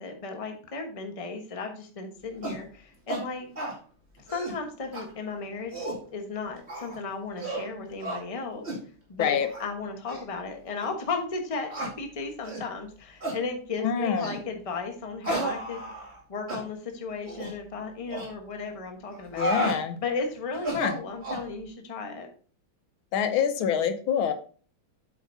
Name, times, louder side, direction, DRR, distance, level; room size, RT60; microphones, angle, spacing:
voice 1, 0.0-3.5 4.3-5.8 6.1-8.6 9.1-15.9 16.3-19.5 20.0-22.3, left 4 dB, 25° left, 4 dB, 0.9 m, -35 dB
sound 1, 2.4-2.6 3.1-3.2 3.6-3.8 4.2-4.6 4.9-5.0 5.5-6.0 6.7-7.0 7.4-7.7 8.0-8.2 8.6-8.8 9.4-9.6 10.1-10.2 10.8-10.9 11.7-11.9 12.4-12.7 13.2-13.4 14.2-14.4 15.2-16.2 16.5-16.6 17.3-17.5 18.1-18.3 19.1-19.8 20.5-21.5, right 2 dB, 30° right, 2.5 m, -33 dB
voice 2, 13.8-14.3 19.3-20.0 20.7-21.0 23.1-24.3, left 8 dB, 80° left, 9 dB, 1.5 m, -26 dB
8.1 x 7.6 x 2.7 m, 0.41 s
omnidirectional pair, 2.3 m